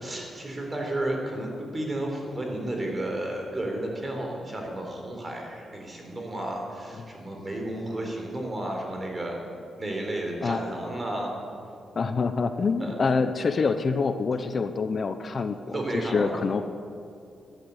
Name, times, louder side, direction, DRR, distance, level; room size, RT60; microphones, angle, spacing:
voice 1, 0.0-9.4 9.8-11.3 12.8-13.0 15.7-16.7, right 1 dB, 25° right, 1 dB, 4.1 m, -32 dB
voice 2, 12.0-16.6, left 4 dB, 45° left, 9 dB, 0.8 m, -26 dB
14.5 x 11.5 x 8.1 m, 2.5 s
cardioid pair, 80°, 0 cm